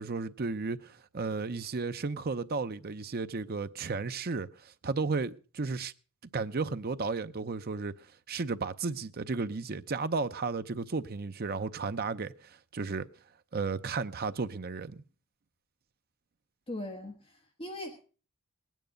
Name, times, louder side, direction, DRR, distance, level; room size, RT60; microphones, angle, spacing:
voice 1, 0.0-5.9 6.3-8.0 8.3-13.1 13.5-15.0, right 4 dB, 45° right, 0.6 m, -34 dB
voice 2, 16.7-18.0, left 1 dB, 25° left, 1.4 m, -40 dB
19.0 x 9.3 x 5.1 m
head